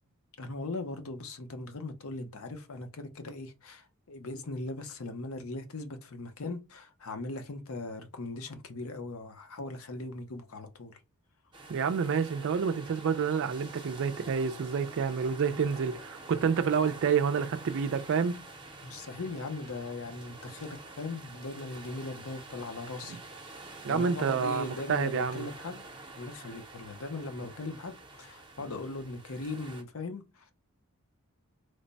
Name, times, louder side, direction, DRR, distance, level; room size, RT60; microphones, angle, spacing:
voice 1, 0.4-11.0 15.5-15.6 18.8-23.2 23.9-25.8 26.1-30.4, left 2 dB, 70° left, 0.7 m, -39 dB
sound 1, 11.5-29.8, right 2 dB, 20° right, 0.7 m, -47 dB
voice 2, 11.7-18.4 23.8-25.5, right 6 dB, 60° right, 0.4 m, -28 dB
3.2 x 2.2 x 3.9 m
head